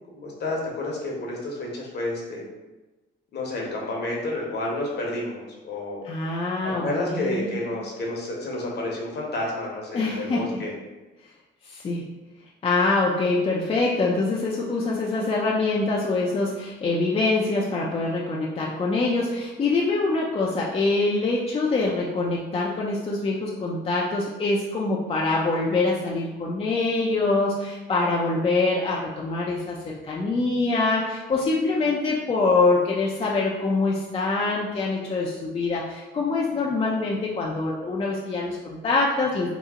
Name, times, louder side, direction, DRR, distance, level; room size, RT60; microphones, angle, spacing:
voice 1, 0.1-2.4 3.3-6.1 6.6-10.7, left 2 dB, 55° left, -2 dB, 0.9 m, -30 dB
voice 2, 6.0-7.6 9.9-10.6 11.6-12.0 12.6-39.5, left 3 dB, 30° left, -4 dB, 0.4 m, -24 dB
2.9 x 2.0 x 3.6 m, 1.1 s
cardioid pair, 90°, 20 cm